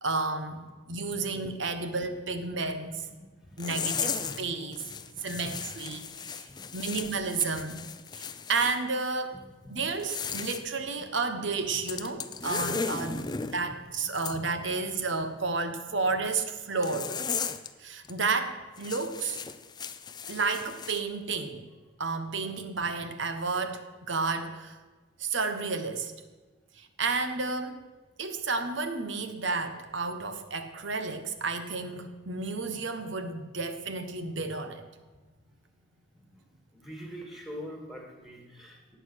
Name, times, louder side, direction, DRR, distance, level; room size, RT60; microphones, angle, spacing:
voice 1, 0.0-3.1 3.6-4.8 5.2-7.9 8.1-9.4 9.7-13.3 13.5-17.1 17.8-19.4 20.3-21.7 22.0-24.7 25.2-26.1 26.8-27.8 28.2-34.8, right 4 dB, 60° right, 9 dB, 1.3 m, -32 dB
sound 1, 3.6-4.4 4.7-8.8 9.9-10.6 11.8-13.6 14.1-14.4 16.8-17.7 18.0-18.2 18.8-21.0, left 6 dB, 20° left, 0.5 m, -36 dB
voice 2, 3.9-4.3 4.8-5.6 6.7-6.9 9.6-9.8 13.4-13.5 36.3-36.4 36.7-39.0, equal, ahead, 1 dB, 2.4 m, -44 dB
18.0 x 8.0 x 6.4 m, 1.3 s
head